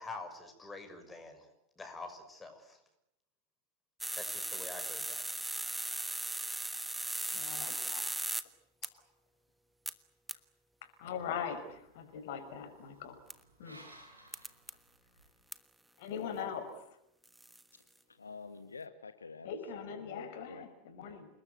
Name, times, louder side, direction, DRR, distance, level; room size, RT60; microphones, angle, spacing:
voice 1, 0.0-1.5 1.8-2.8 4.1-5.2, left 3 dB, 15° left, 6 dB, 6.3 m, -46 dB
sound 1, 4.0-8.4 8.8-8.9 9.9-10.0 10.3-10.4 13.3-13.4 14.3-14.7 15.5-15.6 17.3-17.6, right 1 dB, 5° right, 1.3 m, -37 dB
voice 2, 7.3-8.1 10.8-13.2 13.6-13.8 16.0-16.7 19.4-21.3, left 7 dB, 50° left, 9 dB, 5.5 m, -41 dB
sound 2, 11.1-15.4, right 1 dB, 85° right, 6.3 m, -59 dB
voice 3, 17.7-20.7, left 4 dB, 75° left, 10 dB, 1.5 m, -49 dB
29.0 x 20.5 x 8.1 m, 0.82 s
figure-of-eight pair, 90°, 0 cm